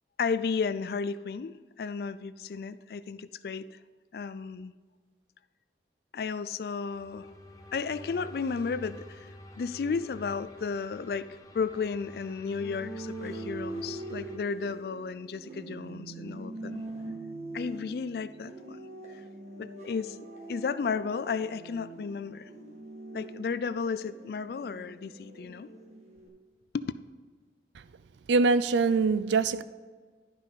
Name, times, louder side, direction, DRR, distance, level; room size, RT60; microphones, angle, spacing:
voice 1, 0.2-3.8 4.1-4.7 6.1-7.3 7.7-9.3 9.6-16.8 17.5-18.8 19.1-19.2 19.6-20.2 20.5-22.5 23.1-25.7 26.7-26.9, left 5 dB, 60° left, 0.3 m, -33 dB
sound 1, 6.8-14.4, left 1 dB, 20° left, 0.7 m, -48 dB
sound 2, 12.6-26.3, right 2 dB, 40° right, 1.6 m, -43 dB
voice 2, 28.3-29.6, right 4 dB, 90° right, 0.4 m, -23 dB
12.0 x 5.5 x 4.0 m
head